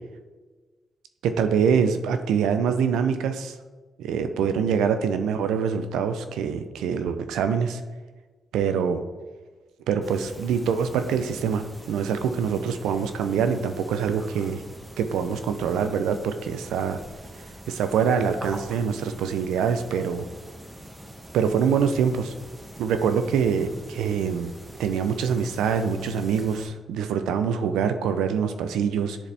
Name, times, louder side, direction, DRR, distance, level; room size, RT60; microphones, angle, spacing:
voice 1, 1.2-3.6 4.0-7.8 8.5-9.0 9.9-14.6 15.0-17.0 17.7-20.3 21.3-22.3 22.8-29.2, right 7 dB, 90° right, 9 dB, 0.5 m, -25 dB
sound 1, 10.0-26.7, right 1 dB, 20° right, 1.2 m, -44 dB
10.0 x 4.1 x 3.4 m, 1.3 s
cardioid pair, 75°, 0 cm